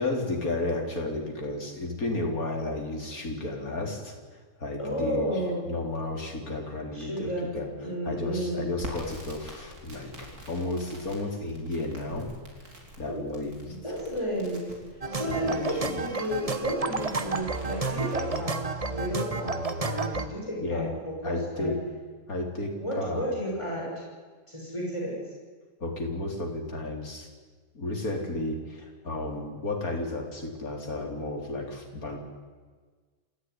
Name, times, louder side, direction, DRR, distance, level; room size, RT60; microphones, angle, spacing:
voice 1, 0.0-5.4 5.7-12.3 12.6-13.7 15.3-15.8 20.6-20.9 21.2-21.8 22.3-23.3 25.8-27.3 27.7-32.2, left 2 dB, 55° left, 2 dB, 4.3 m, -33 dB
voice 2, 4.8-5.7 6.9-8.7 13.1-13.2 13.6-14.7 15.1-18.6 18.9-20.9 21.3-21.7 22.8-23.9 24.5-25.2, equal, 15° left, -3 dB, 6.4 m, -32 dB
Crackle, 8.8-18.2, equal, 60° right, 4.9 m, -46 dB
sound 1, 15.0-20.3, right 3 dB, 25° right, 1.1 m, -31 dB
27.0 x 15.0 x 9.8 m, 1.5 s
omnidirectional pair, 1.8 m